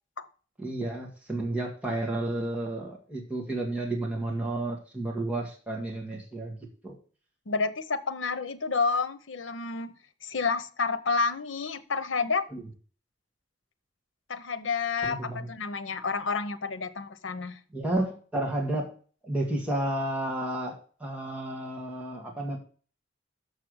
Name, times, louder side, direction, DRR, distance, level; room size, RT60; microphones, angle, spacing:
voice 1, 0.6-6.6 6.8-6.9 12.5-12.6 15.0-15.5 17.7-18.9 19.2-22.6, right 1 dB, 5° right, -2 dB, 1.9 m, -31 dB
voice 2, 7.5-9.9 10.2-12.4 14.3-17.6, left 4 dB, 80° left, 11 dB, 0.9 m, -29 dB
6.8 x 6.1 x 6.3 m, 0.40 s
head